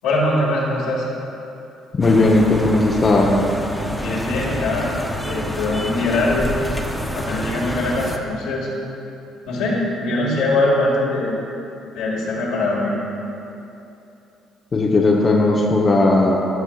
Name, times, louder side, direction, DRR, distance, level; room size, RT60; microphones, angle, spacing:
voice 1, 0.0-1.0 4.0-4.9 5.2-6.5 7.1-8.7 9.5-11.3 11.9-12.9, left 2 dB, 80° left, -4 dB, 2.0 m, -22 dB
voice 2, 1.9-3.3 14.7-16.4, left 2 dB, 40° left, -2 dB, 0.8 m, -16 dB
sound 1, 2.0-8.2, equal, ahead, 0.8 m, -27 dB
15.5 x 6.5 x 2.4 m, 2.9 s
hypercardioid pair, 60°, 0 cm